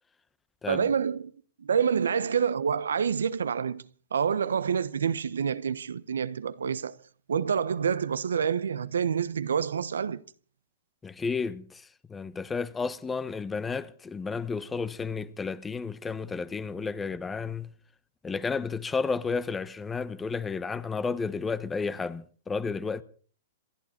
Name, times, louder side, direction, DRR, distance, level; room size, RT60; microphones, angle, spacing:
voice 1, 0.7-1.3 1.6-7.0 7.3-10.2, right 7 dB, 80° right, 1.0 m, -27 dB
voice 2, 11.0-17.7 18.2-23.0, left 5 dB, 15° left, 1.1 m, -32 dB
27.5 x 12.0 x 4.4 m
hypercardioid pair, 115°, 0 cm